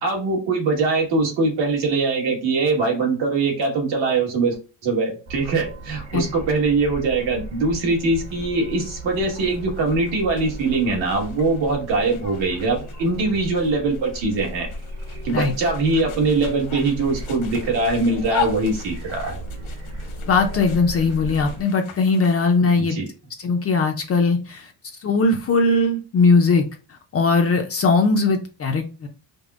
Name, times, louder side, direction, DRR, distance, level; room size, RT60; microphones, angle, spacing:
voice 1, 0.0-4.6 4.8-14.7 15.2-19.4 22.8-23.1, right 3 dB, 65° right, 0 dB, 1.5 m, -22 dB
sound 1, 5.3-21.6, right 1 dB, 35° right, 0.9 m, -36 dB
sound 2, 8.2-22.6, left 7 dB, 90° left, 1.4 m, -38 dB
voice 2, 20.3-23.0 23.4-24.7 25.0-26.6 27.1-29.1, left 3 dB, 30° left, 4 dB, 0.4 m, -19 dB
5.1 x 2.0 x 2.4 m, 0.33 s
cardioid pair, 145°, 47 cm